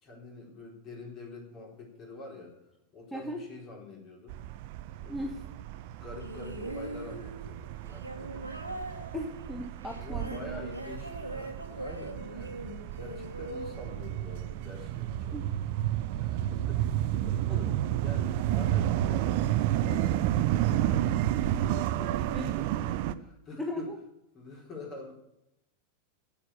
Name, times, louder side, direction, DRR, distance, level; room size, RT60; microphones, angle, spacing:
voice 1, 0.0-2.6 2.9-4.4 5.0-5.3 6.0-8.5 9.9-12.6 13.0-21.1 21.5-23.9 24.3-25.1, left 3 dB, 30° left, -1 dB, 4.1 m, -47 dB
sound 1, 4.3-23.1, right 12 dB, 50° right, 0.5 m, -31 dB
sound 2, 6.2-14.6 15.6-15.7, right 1 dB, 85° right, 1.2 m, -41 dB
voice 2, 9.1-10.4 15.3-15.4 22.3-22.7 23.6-24.0, left 1 dB, 5° left, 1 dB, 1.3 m, -36 dB
8.5 x 8.5 x 8.5 m, 0.84 s
figure-of-eight pair, 90°, 0 cm